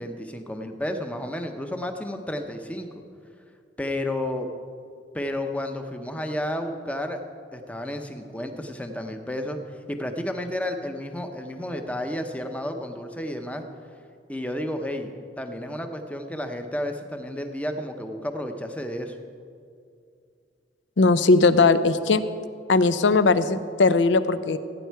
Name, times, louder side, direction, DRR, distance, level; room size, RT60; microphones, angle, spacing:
voice 1, 0.0-2.9 3.8-4.5 5.1-7.2 7.5-9.6 9.9-13.6 14.3-19.2, left 1 dB, 10° left, 5 dB, 0.7 m, -31 dB
voice 2, 21.0-22.2 22.7-24.6, left 3 dB, 80° left, 13 dB, 0.5 m, -19 dB
16.0 x 9.1 x 4.7 m, 2.4 s
head